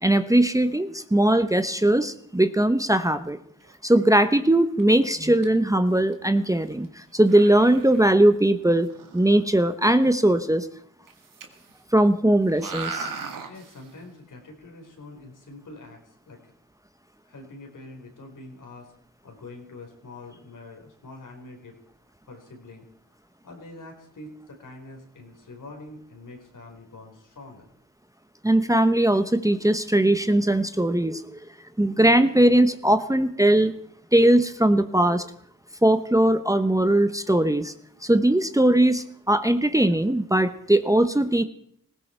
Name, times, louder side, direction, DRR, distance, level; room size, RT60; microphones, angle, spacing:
voice 1, 0.0-3.4 3.8-8.9 9.1-10.7 11.9-13.1 28.4-31.2 31.8-33.7 34.1-35.3 35.8-37.7 38.0-41.4, right 1 dB, 10° right, 10 dB, 0.9 m, -20 dB
sound 1, 3.6-3.9 4.2-4.3 4.8-5.0 5.4-5.5 5.7-5.8 6.0-6.1 6.6-6.9 7.3-8.1 8.8-9.4 11.1-11.7 12.0-12.1 12.5-13.9, right 4 dB, 80° right, 1.9 m, -37 dB
voice 2, 13.4-16.5 17.2-18.9 19.2-21.8 22.3-22.9 23.4-27.7, left 2 dB, 70° left, 2 dB, 4.3 m, -45 dB
18.5 x 16.0 x 4.5 m, 0.66 s
cardioid pair, 60°, 32 cm